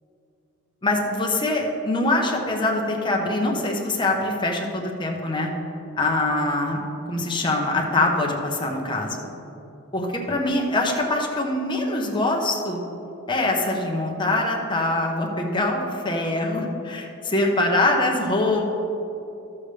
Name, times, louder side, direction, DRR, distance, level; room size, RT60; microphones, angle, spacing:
voice 1, 0.8-5.5 6.0-6.8 7.1-9.3 9.9-12.8 13.3-18.8, left 2 dB, 20° left, 0 dB, 0.9 m, -23 dB
13.0 x 7.2 x 3.3 m, 2.9 s
head